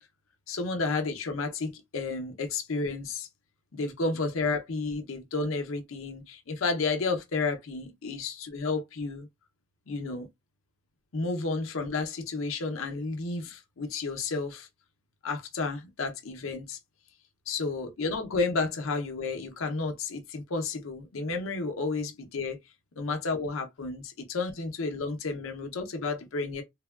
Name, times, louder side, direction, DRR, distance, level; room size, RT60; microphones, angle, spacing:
voice 1, 0.5-3.3 3.7-9.3 9.9-10.3 11.1-14.7 15.2-16.8 17.5-22.6 23.0-26.6, left 3 dB, 85° left, 0.6 m, -31 dB
3.3 x 2.1 x 2.3 m
head